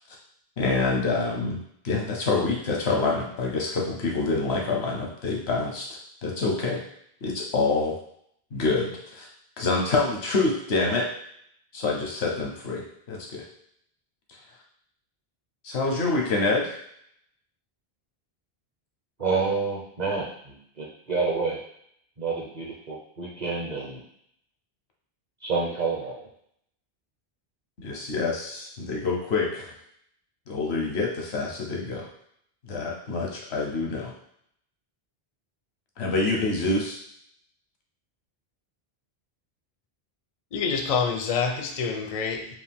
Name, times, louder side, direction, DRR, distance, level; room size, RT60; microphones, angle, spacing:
voice 1, 0.6-1.6 1.8-6.8 7.2-8.0 8.5-9.3 9.6-11.1 11.7-13.4 15.6-16.8 27.8-29.7 30.5-32.1 32.6-34.1 36.0-37.0, left 3 dB, 85° left, 0 dB, 1.2 m, -26 dB
voice 2, 19.2-21.6 22.2-24.0 25.4-26.1, right 4 dB, 45° right, -3 dB, 0.8 m, -28 dB
voice 3, 40.5-42.6, left 5 dB, 50° left, 4 dB, 0.5 m, -27 dB
4.9 x 2.4 x 3.5 m, 0.69 s
omnidirectional pair, 1.1 m